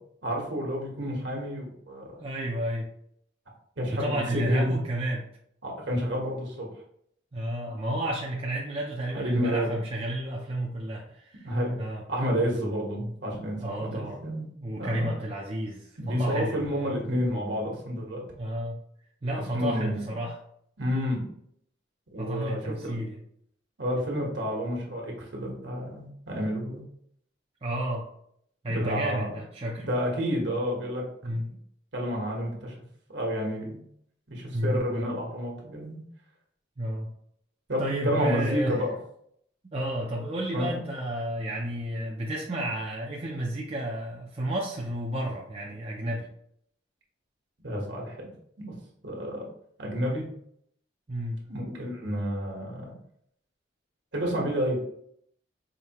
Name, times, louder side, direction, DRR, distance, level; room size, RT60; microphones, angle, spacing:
voice 1, 0.2-2.1 3.8-4.8 5.6-6.7 9.1-9.7 11.4-11.8 12.1-15.1 16.0-18.2 19.5-20.2 20.8-21.2 22.1-23.1 23.8-26.8 28.7-29.3 29.8-31.5 31.9-32.7 33.1-33.8 34.3-36.0 37.7-38.9 40.5-40.8 47.6-48.3 48.6-48.8 49.0-49.5 49.8-50.2 51.5-52.9 54.1-54.8, equal, 65° right, -1 dB, 1.3 m, -30 dB
voice 2, 2.2-2.9 3.9-5.3 7.3-11.5 11.8-12.0 13.6-14.2 14.6-17.0 18.4-18.8 19.2-20.4 22.2-23.2 27.6-28.1 28.6-29.9 31.2-31.5 34.5-34.8 36.8-37.1 37.8-38.8 39.7-46.3 51.1-51.4, right 1 dB, 30° right, -3 dB, 0.5 m, -31 dB
5.0 x 2.7 x 2.9 m, 0.69 s
head